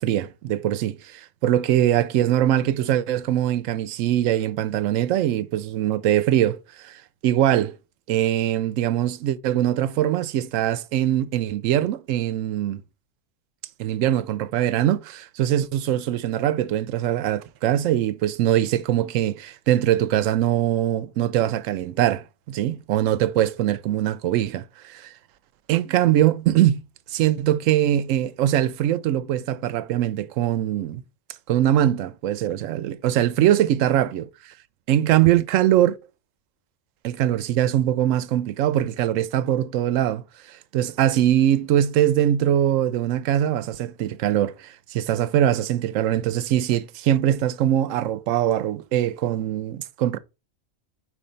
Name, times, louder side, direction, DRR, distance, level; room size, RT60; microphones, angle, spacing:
voice 1, 0.0-7.7 8.1-12.8 13.8-25.1 25.7-26.8 27.1-31.0 31.5-34.3 34.9-36.0 37.0-50.2, right 12 dB, 85° right, 1.0 m, -22 dB
4.8 x 4.3 x 5.1 m
omnidirectional pair, 1.3 m